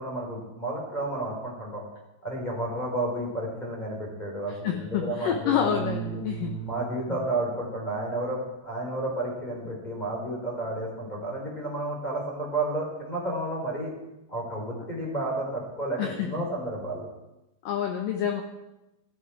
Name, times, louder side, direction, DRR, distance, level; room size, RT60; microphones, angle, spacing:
voice 1, 0.0-1.8 2.2-5.7 6.6-13.9 14.3-17.1, right 1 dB, 10° left, -4 dB, 3.2 m, -31 dB
voice 2, 4.5-6.6 7.1-7.2 16.0-16.5 17.6-18.4, left 9 dB, 85° left, 4 dB, 1.9 m, -28 dB
sound 1, 5.4-7.4 10.0-10.2, right 10 dB, 40° left, 1.8 m, -37 dB
15.5 x 13.0 x 4.8 m, 0.96 s
omnidirectional pair, 5.3 m